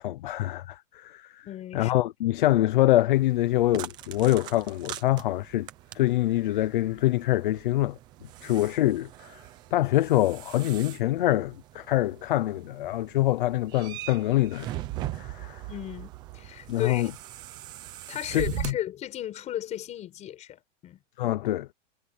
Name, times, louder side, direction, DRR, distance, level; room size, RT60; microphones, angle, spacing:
voice 1, 0.0-1.5 1.7-5.7 5.9-8.0 8.4-9.4 9.7-14.8 15.1-15.6 16.7-17.1 18.3-18.7 21.2-21.7, left 15 dB, 40° left, 0.8 m, -25 dB
voice 2, 1.5-1.9 15.7-17.1 18.1-21.0, left 12 dB, 15° left, 5.3 m, -35 dB
sound 1, 3.1-18.7, right 15 dB, 10° right, 0.6 m, -41 dB
supercardioid pair, 175°, 39 cm